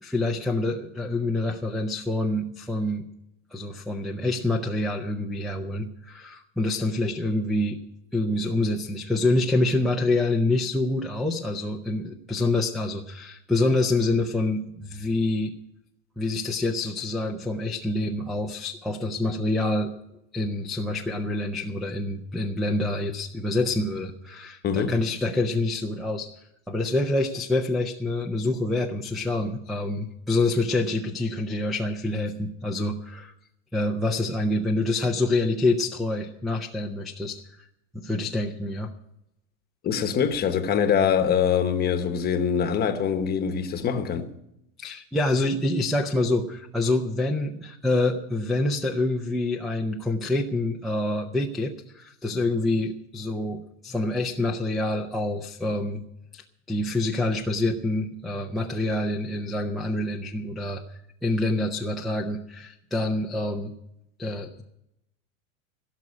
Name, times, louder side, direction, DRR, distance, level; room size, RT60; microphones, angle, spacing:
voice 1, 0.0-3.1 3.5-7.8 8.1-15.5 16.2-19.9 20.3-26.3 26.7-33.3 33.7-37.7 37.9-38.9 44.8-56.0 56.3-63.7 64.2-64.6, left 2 dB, ahead, 0.5 m, -26 dB
voice 2, 24.6-25.0 39.8-44.3, left 7 dB, 25° left, 1.1 m, -24 dB
17.0 x 6.4 x 9.6 m
supercardioid pair, 145°, 40 cm